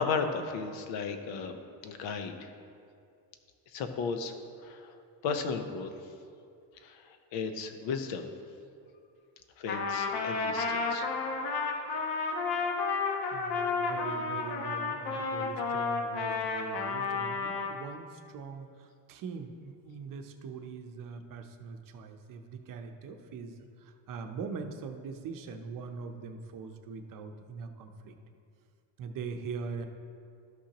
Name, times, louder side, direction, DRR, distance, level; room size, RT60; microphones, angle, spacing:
voice 1, 0.0-1.6 1.8-2.5 3.7-4.3 4.6-5.0 5.2-5.9 6.8-7.0 7.3-8.3 9.6-11.1, left 5 dB, 75° left, 7 dB, 0.9 m, -34 dB
Trumpet, 9.7-17.8, left 4 dB, 55° left, 1.1 m, -31 dB
voice 2, 13.3-23.5 23.8-28.2 29.0-29.9, right 5 dB, 45° right, 5 dB, 0.7 m, -42 dB
13.0 x 5.7 x 2.9 m, 2.4 s
cardioid pair, 130°, 46 cm